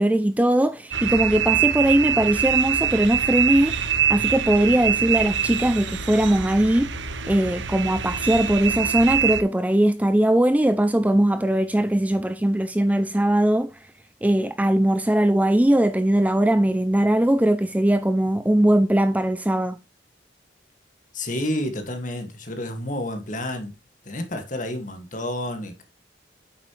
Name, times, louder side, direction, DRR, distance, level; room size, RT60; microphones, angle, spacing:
voice 1, 0.0-6.9 7.3-13.7 14.2-19.8, right 1 dB, 10° right, 0.4 m, -20 dB
sound 1, 0.9-9.4, right 9 dB, 80° right, 0.9 m, -24 dB
voice 2, 21.1-23.8 24.0-25.8, left 1 dB, 45° left, 1.9 m, -30 dB
9.0 x 7.5 x 3.1 m
head